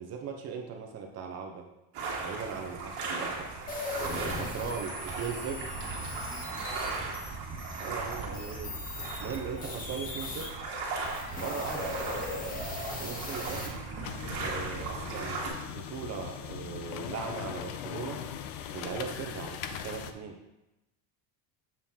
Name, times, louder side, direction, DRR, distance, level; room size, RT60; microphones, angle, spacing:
voice 1, 0.0-1.7 2.2-3.5 4.1-5.6 7.8-8.7 9.2-10.6 11.3-12.0 13.0-13.8 14.4-18.2 18.7-20.4, right 6 dB, 35° right, 2 dB, 0.6 m, -39 dB
sound 1, 1.9-15.5, right 3 dB, 55° right, 1.6 m, -37 dB
sound 2, 3.7-10.5 11.0-13.7, left 2 dB, 20° left, 0.6 m, -39 dB
voice 2, 4.6-7.2, left 1 dB, 5° right, -6 dB, 1.4 m, -53 dB
sound 3, 12.0-20.1, left 9 dB, 80° left, 0.6 m, -41 dB
7.4 x 4.3 x 3.6 m, 0.93 s
cardioid pair, 170°, 45 cm